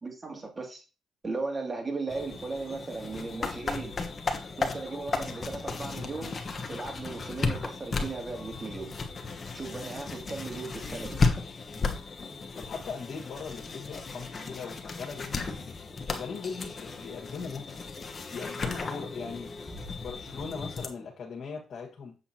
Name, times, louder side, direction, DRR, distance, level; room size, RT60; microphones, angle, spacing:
voice 1, 0.0-0.8 1.2-4.0 4.6-6.4 6.7-9.0 9.5-11.2 19.2-19.3, right 3 dB, 30° right, 2.4 m, -37 dB
sound 1, 2.1-20.9, left 4 dB, 35° left, 1.2 m, -34 dB
voice 2, 12.6-15.6 16.0-17.8 18.3-19.5 20.0-22.2, left 5 dB, 60° left, 1.5 m, -39 dB
7.2 x 6.9 x 2.9 m
cardioid pair, 90°, 0 cm